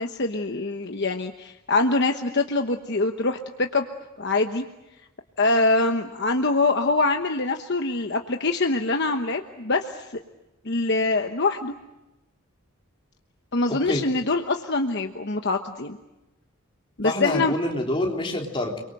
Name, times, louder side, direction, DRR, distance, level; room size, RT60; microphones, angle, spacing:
voice 1, 0.0-3.8 4.2-4.6 5.4-10.1 10.6-11.7 13.5-16.0 17.0-17.5, left 3 dB, 50° left, 5 dB, 1.1 m, -24 dB
voice 2, 13.7-14.0 17.0-18.8, left 1 dB, 25° left, 0 dB, 3.5 m, -27 dB
30.0 x 23.0 x 7.8 m, 0.99 s
head